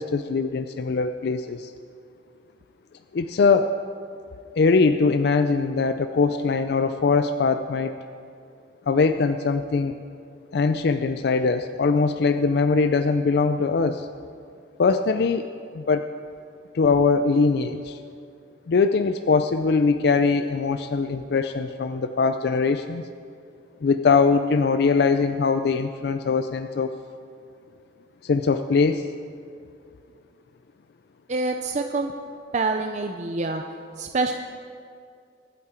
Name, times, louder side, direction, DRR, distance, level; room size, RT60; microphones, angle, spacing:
voice 1, 0.0-1.7 3.1-3.8 4.6-7.9 8.9-9.9 10.5-14.1 14.8-15.5 15.7-16.0 16.7-18.0 18.7-23.0 23.8-26.9 28.2-29.1, left 4 dB, 60° left, 9 dB, 0.4 m, -21 dB
voice 2, 31.3-32.1 32.5-33.6 34.0-34.3, right 3 dB, 40° right, 4 dB, 0.5 m, -26 dB
23.5 x 8.5 x 4.4 m, 2.4 s
head